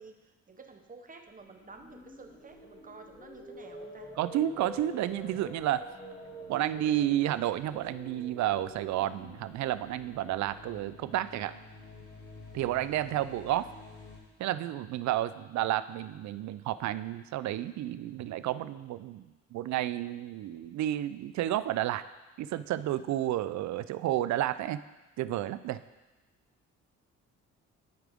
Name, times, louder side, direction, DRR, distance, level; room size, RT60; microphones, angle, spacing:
voice 1, 0.0-4.1, right 4 dB, 30° right, 5 dB, 1.0 m, -51 dB
sound 1, 1.4-11.5, equal, 30° left, 2.7 m, -48 dB
sound 2, 1.7-2.5 6.2-14.2, left 3 dB, 70° left, 2.1 m, -53 dB
voice 2, 4.2-5.9 6.5-11.5 12.5-13.7 14.4-19.3 19.5-22.0 22.4-24.8 25.2-25.8, right 13 dB, 65° right, 14 dB, 0.4 m, -31 dB
13.0 x 4.8 x 3.6 m, 1.1 s
cardioid pair, 90°, 30 cm